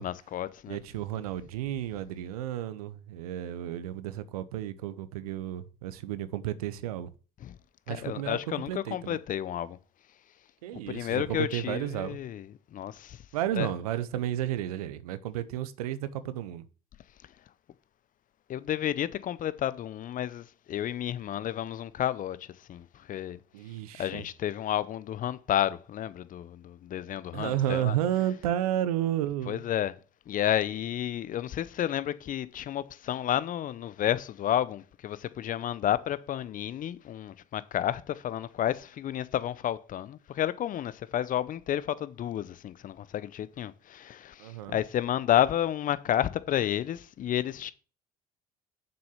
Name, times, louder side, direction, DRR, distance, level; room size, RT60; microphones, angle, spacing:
voice 1, 0.0-0.8 7.4-7.5 7.9-9.8 10.9-12.5 12.7-13.2 13.6-13.7 18.5-23.4 24.0-27.9 29.5-29.9 30.3-47.7, left 11 dB, 45° left, 0.7 m, -31 dB
voice 2, 0.7-7.1 7.9-9.2 10.6-12.2 13.3-16.6 23.5-24.2 27.3-29.6 44.4-44.8, right 12 dB, 85° right, 0.7 m, -32 dB
7.0 x 6.3 x 5.7 m
hypercardioid pair, 65°, 19 cm